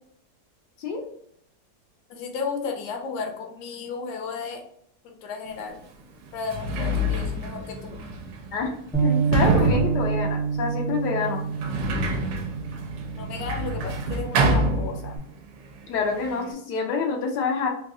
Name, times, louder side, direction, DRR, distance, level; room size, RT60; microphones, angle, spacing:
voice 1, 2.1-4.6 5.2-5.8 6.3-8.0 13.2-15.1, left 5 dB, 70° left, 2 dB, 1.1 m, -33 dB
Sliding door, 5.6-5.7 6.3-15.4 15.7-16.5, right 1 dB, 80° right, 1.2 m, -27 dB
Bass guitar, 8.9-15.2, right 6 dB, ahead, 0.5 m, -28 dB
voice 2, 9.0-11.4 15.9-17.7, left 4 dB, 85° left, 2 dB, 1.2 m, -27 dB
3.6 x 2.3 x 2.6 m, 0.66 s
omnidirectional pair, 1.8 m